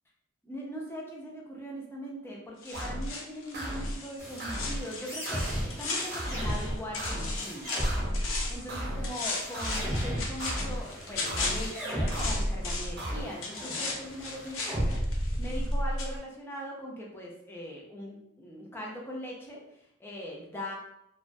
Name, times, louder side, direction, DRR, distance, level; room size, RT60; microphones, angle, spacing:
voice 1, 0.4-20.7, equal, 10° left, -2 dB, 0.4 m, -41 dB
sound 1, 2.6-6.7 6.9-8.7 9.0-13.0 13.4-15.7 16.0-16.1, left 3 dB, 85° left, 0.5 m, -36 dB
sound 2, 2.7-3.1 3.5-4.0 4.4-4.8 5.2-5.7 6.1-6.5 7.0-7.4 7.8-8.2 8.7-9.1 9.5-10.0 10.4-10.8 11.2-11.7 12.1-12.5 13.0-13.2, equal, 55° right, 0.6 m, -34 dB
sound 3, 4.2-16.2, equal, 15° right, 0.8 m, -34 dB
2.3 x 2.2 x 2.5 m, 0.80 s
head